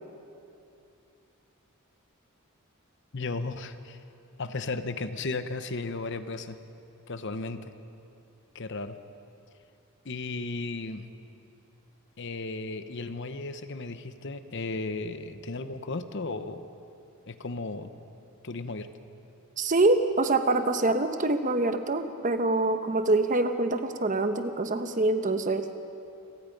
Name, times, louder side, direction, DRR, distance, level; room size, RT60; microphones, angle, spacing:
voice 1, 3.1-4.0 4.4-6.6 7.1-7.7 8.5-9.0 10.0-11.1 12.2-16.7 17.3-17.9 18.4-18.9, left 3 dB, 55° left, 10 dB, 0.9 m, -35 dB
voice 2, 19.6-25.7, right 2 dB, 35° right, 8 dB, 1.0 m, -25 dB
28.5 x 17.5 x 5.3 m, 2.7 s
head